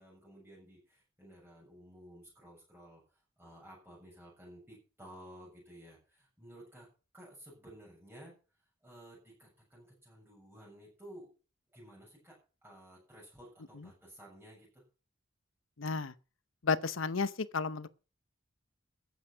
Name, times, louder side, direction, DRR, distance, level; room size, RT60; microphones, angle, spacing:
voice 1, 0.0-6.9 7.1-8.3 8.8-11.3 11.7-12.4 12.6-14.8, right 1 dB, 10° right, 7.1 m, -54 dB
voice 2, 15.8-16.1 16.6-17.9, left 4 dB, 75° left, 0.8 m, -32 dB
14.0 x 9.5 x 5.6 m
head